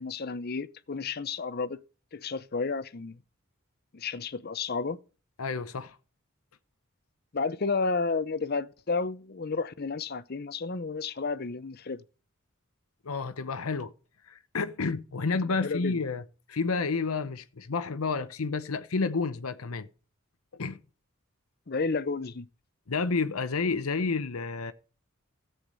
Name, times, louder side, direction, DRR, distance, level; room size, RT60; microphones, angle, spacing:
voice 1, 0.0-1.8 2.1-3.2 3.9-5.0 7.3-12.0 15.5-16.0 21.7-22.5, left 4 dB, 45° left, 0.6 m, -31 dB
voice 2, 5.4-6.0 13.0-13.9 14.3-16.2 16.5-19.9 20.5-20.8 22.9-24.7, left 4 dB, 90° left, 0.8 m, -30 dB
13.5 x 8.0 x 5.4 m
head